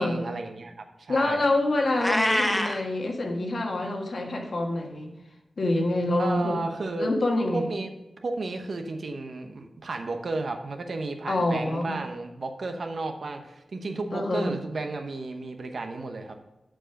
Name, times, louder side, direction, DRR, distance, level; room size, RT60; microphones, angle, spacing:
voice 1, 0.0-1.4 6.2-7.1 7.5-7.9 8.2-16.4, right 3 dB, 65° right, 5 dB, 0.9 m, -33 dB
voice 2, 1.1-5.1 5.6-6.7 7.0-7.7 11.3-12.0 14.1-14.5, left 2 dB, 60° left, 1 dB, 1.4 m, -26 dB
Meow, 2.0-2.8, left 1 dB, 15° left, 0.7 m, -24 dB
7.5 x 5.1 x 5.8 m, 0.95 s
cardioid pair, 70°, 0 cm